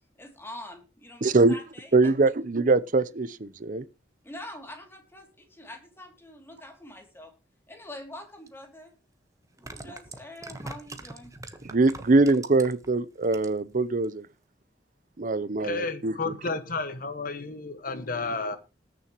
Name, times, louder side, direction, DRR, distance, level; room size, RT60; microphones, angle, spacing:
voice 1, 0.2-2.1 4.3-5.3 5.6-7.3 7.7-8.9 9.6-11.3, left 1 dB, 15° left, 2.7 m, -44 dB
voice 2, 1.2-1.6 1.9-3.8 11.6-14.3 15.2-16.1, right 3 dB, 50° right, 0.7 m, -23 dB
sound 1, 8.5-8.6 9.4-12.9 13.2-13.7 14.0-14.1, right 2 dB, 20° right, 1.2 m, -42 dB
voice 3, 15.6-18.6, left 3 dB, 50° left, 1.5 m, -32 dB
20.0 x 7.0 x 3.0 m
head